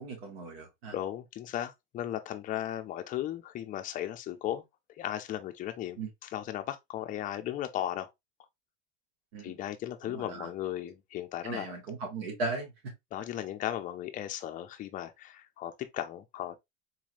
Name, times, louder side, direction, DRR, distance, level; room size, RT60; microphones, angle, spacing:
voice 1, 0.0-0.9 6.0-6.1 9.3-9.6 10.0-10.5 11.4-12.7, right 3 dB, 85° right, 1.8 m, -37 dB
voice 2, 0.9-4.6 5.0-6.0 6.3-8.1 9.4-11.7 13.1-16.6, left 12 dB, 25° left, 0.4 m, -36 dB
4.0 x 3.1 x 2.4 m
supercardioid pair, 150°, 30 cm